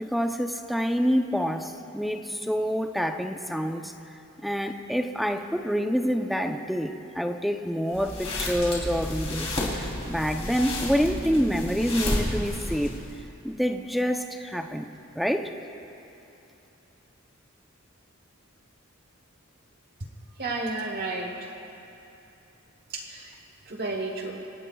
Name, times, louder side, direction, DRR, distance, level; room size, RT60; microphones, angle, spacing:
voice 1, 0.0-3.9 4.4-12.9 13.4-14.9 15.1-15.5, equal, ahead, 5 dB, 0.6 m, -27 dB
sound 1, 7.9-13.2, left 1 dB, 30° left, 3.3 m, -31 dB
voice 2, 20.3-21.5 22.9-23.4 23.6-24.4, right 2 dB, 50° right, 2 dB, 1.2 m, -32 dB
27.5 x 17.0 x 2.3 m, 2.9 s
head